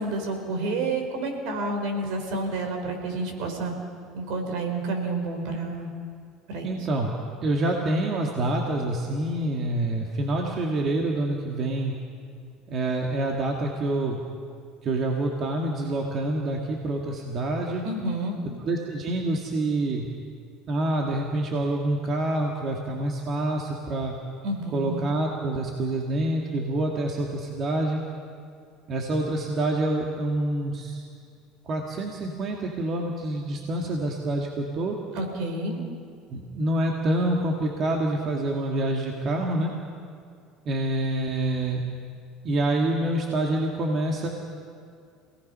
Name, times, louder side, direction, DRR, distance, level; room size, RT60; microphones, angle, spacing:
voice 1, 0.0-3.7 4.1-5.9 6.5-6.7 17.8-18.4 24.4-25.0 35.1-35.8, right 2 dB, 70° right, 4 dB, 4.6 m, -29 dB
voice 2, 6.6-11.9 12.7-14.2 14.8-17.8 18.6-20.1 20.7-24.1 24.7-28.0 28.9-31.1 31.7-35.0 36.3-39.7 40.7-41.8 42.4-44.3, right 1 dB, 45° right, 0 dB, 2.3 m, -27 dB
27.5 x 18.5 x 5.7 m, 2.3 s
supercardioid pair, 110°, 0 cm